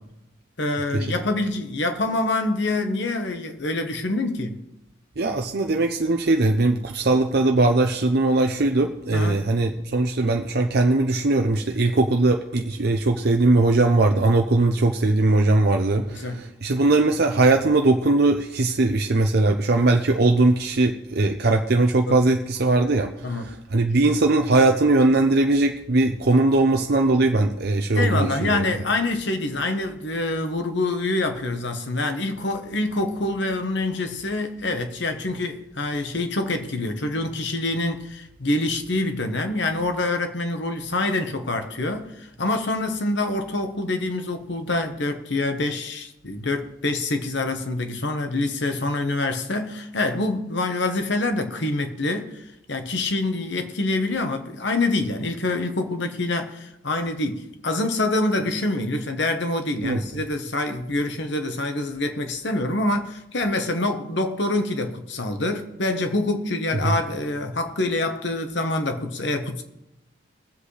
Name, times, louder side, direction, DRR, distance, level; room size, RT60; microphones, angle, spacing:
voice 1, 0.6-4.6 9.1-9.4 16.1-16.5 22.1-22.2 23.2-23.6 27.9-69.6, left 2 dB, 60° left, 1.2 m, -26 dB
voice 2, 5.2-28.6 59.8-60.0 66.8-66.9, right 2 dB, 50° right, 0.6 m, -20 dB
22.0 x 7.9 x 3.3 m
head